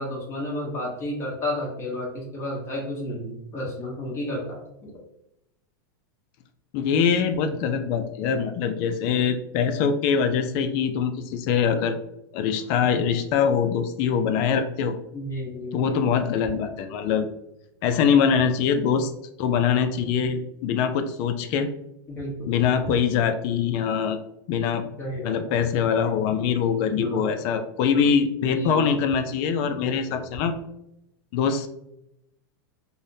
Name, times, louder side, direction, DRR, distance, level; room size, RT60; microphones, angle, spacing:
voice 1, 0.0-5.0 15.1-15.8 22.1-22.5 25.0-25.4 26.9-27.2 28.0-28.1 28.4-28.8 29.7-30.3, left 1 dB, 20° left, -4 dB, 1.0 m, -32 dB
voice 2, 6.7-12.0 12.3-14.9 15.7-17.3 17.8-19.1 19.4-21.7 22.5-24.2 24.5-24.8 25.2-30.5 31.3-31.7, left 7 dB, 45° left, 7 dB, 0.3 m, -23 dB
5.3 x 2.1 x 2.6 m, 0.84 s
supercardioid pair, 140°, 12 cm